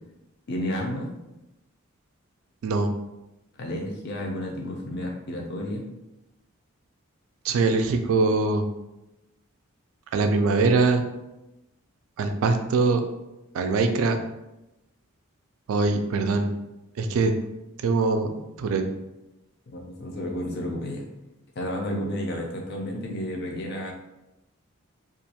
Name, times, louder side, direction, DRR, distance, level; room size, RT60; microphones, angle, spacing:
voice 1, 0.5-1.1 3.6-5.8 19.7-21.1 21.6-23.9, left 1 dB, 50° left, 0 dB, 0.5 m, -31 dB
voice 2, 7.4-8.7 10.1-11.0 12.2-13.0 13.5-14.2 15.7-16.5 17.0-17.3 17.8-18.8, right 3 dB, 70° right, 6 dB, 0.3 m, -22 dB
2.4 x 2.2 x 2.7 m, 0.95 s
head